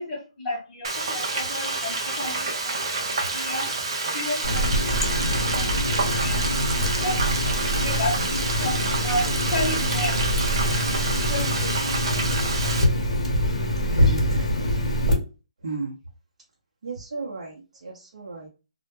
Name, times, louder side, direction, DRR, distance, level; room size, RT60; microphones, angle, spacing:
voice 1, 0.0-3.7 4.1-5.7 6.2-6.6 7.0-7.2 7.7-10.2 10.7-10.9 11.3-11.7, left 1 dB, 15° left, -6 dB, 0.8 m, -32 dB
Frying (food), 0.8-12.8, right 3 dB, 45° right, 0.4 m, -28 dB
Water tap faucet, 4.4-15.1, equal, 60° left, 0.6 m, -24 dB
voice 2, 13.8-14.3 15.6-15.9 16.8-17.5 17.8-18.5, right 4 dB, 80° right, -2 dB, 0.6 m, -33 dB
2.1 x 2.0 x 3.0 m, 0.32 s
hypercardioid pair, 180°, 4 cm